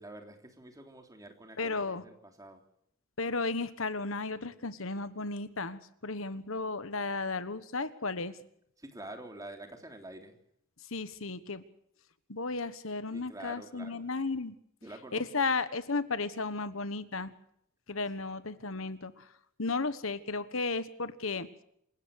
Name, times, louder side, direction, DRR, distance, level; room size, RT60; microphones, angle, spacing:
voice 1, 0.0-2.6 8.8-10.4 13.1-14.1 14.8-15.3, right 1 dB, 15° right, 5 dB, 3.3 m, -47 dB
voice 2, 1.6-2.0 3.2-8.3 10.9-11.6 12.3-14.5 15.1-17.3 17.9-19.3 19.6-21.5, left 3 dB, 75° left, 13 dB, 1.4 m, -34 dB
27.5 x 17.5 x 6.6 m, 0.71 s
head